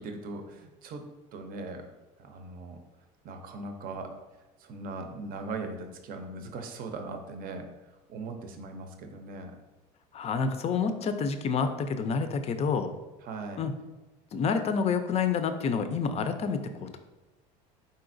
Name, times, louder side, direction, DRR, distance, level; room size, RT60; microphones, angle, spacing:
voice 1, 0.0-1.9 2.2-2.8 3.2-4.1 4.6-7.7 8.1-9.5 13.2-13.6, right 3 dB, 50° right, 6 dB, 0.6 m, -39 dB
voice 2, 10.1-12.9 13.6-13.7 14.3-17.0, left 5 dB, 35° left, 8 dB, 0.4 m, -28 dB
4.2 x 3.9 x 2.6 m, 1.1 s
supercardioid pair, 100°, 19 cm